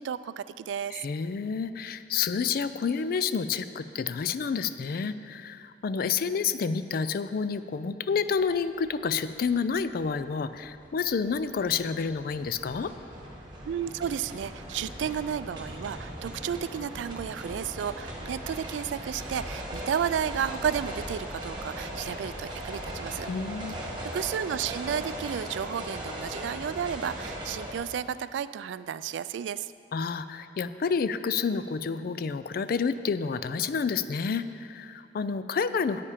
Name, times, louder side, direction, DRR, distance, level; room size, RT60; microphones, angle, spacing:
voice 1, 0.0-1.0 13.6-23.3 23.7-29.7, right 8 dB, 80° right, 15 dB, 0.3 m, -32 dB
voice 2, 0.9-12.9 23.3-23.8 29.9-36.0, left 5 dB, 55° left, 13 dB, 0.4 m, -29 dB
sound 1, 8.7-8.9 9.3-27.7, right 1 dB, 25° right, 1.9 m, -39 dB
10.0 x 8.5 x 5.0 m, 2.4 s
head